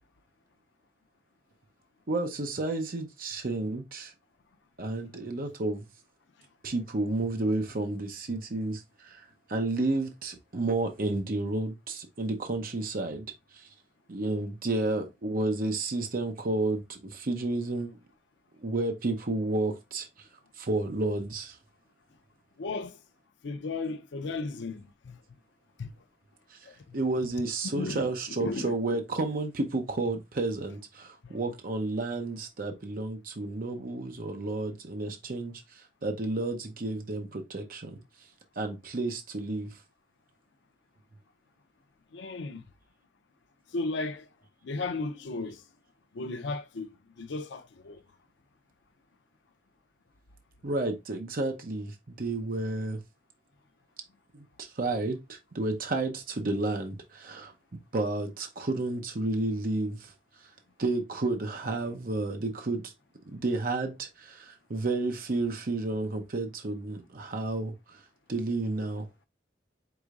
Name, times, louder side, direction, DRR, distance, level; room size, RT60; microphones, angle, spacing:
voice 1, 2.1-4.1 4.8-5.9 6.6-13.3 13.5-13.7 14.1-18.0 18.6-20.3 20.6-21.6 26.5-26.6 26.9-38.0 38.6-39.8 50.6-53.0 54.3-57.5 57.9-60.1 60.4-60.5 60.8-62.9 63.3-68.0 68.3-69.1, right 2 dB, 50° right, 0.7 m, -31 dB
voice 2, 22.6-23.0 23.4-25.2 25.8-25.9 26.6-27.0 27.6-28.1 28.4-28.7 31.2-31.4 42.1-42.6 43.7-44.3 44.6-45.6 46.1-48.0, left 3 dB, 85° left, 0.5 m, -35 dB
4.9 x 3.9 x 2.4 m
head